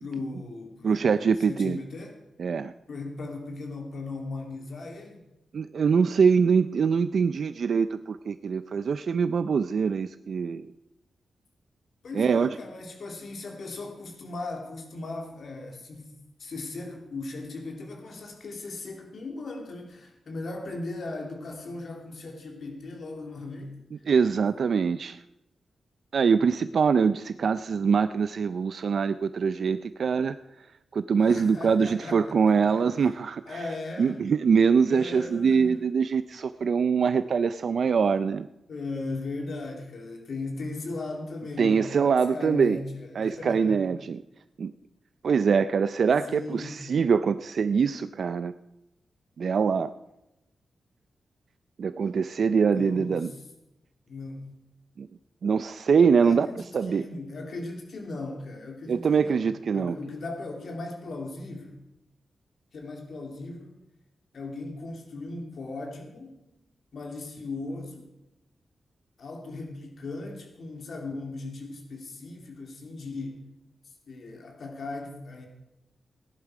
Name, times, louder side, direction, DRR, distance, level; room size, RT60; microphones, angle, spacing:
voice 1, 0.0-2.2 2.9-5.3 12.0-16.1 16.4-23.8 31.2-33.1 33.5-34.2 34.9-35.7 38.7-43.8 46.3-46.9 52.7-53.3 54.1-54.5 56.2-59.5 59.7-61.8 62.7-63.7 64.3-66.4 66.9-68.1 69.2-73.5 74.1-75.5, left 3 dB, 60° left, 2 dB, 2.7 m, -38 dB
voice 2, 0.8-1.8 2.4-2.7 5.5-10.7 12.1-12.5 24.1-25.2 26.1-30.3 30.9-33.6 34.0-38.5 41.6-42.8 43.2-44.2 44.6-44.7 45.2-48.5 49.4-49.9 51.8-53.3 55.0-55.1 55.4-57.0 58.9-60.0, right 6 dB, 55° right, 12 dB, 0.4 m, -24 dB
17.5 x 11.0 x 4.9 m, 0.91 s
wide cardioid pair, 160°, 0 cm